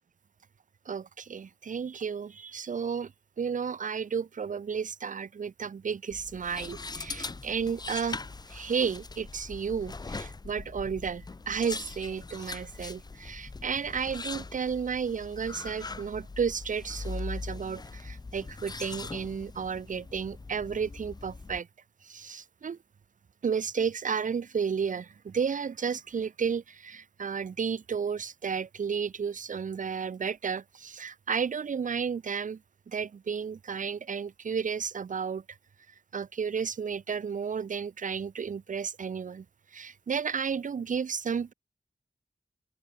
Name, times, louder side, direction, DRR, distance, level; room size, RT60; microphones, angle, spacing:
voice 1, 0.9-3.1 3.4-8.2 8.5-21.7 22.0-22.8 23.4-32.6 32.9-35.4 36.1-39.4 39.7-41.5, right 6 dB, 55° right, 0.4 m, -32 dB
sound 1, 6.1-21.6, left 3 dB, 25° left, 0.4 m, -41 dB
open air
wide cardioid pair, 95°, 16 cm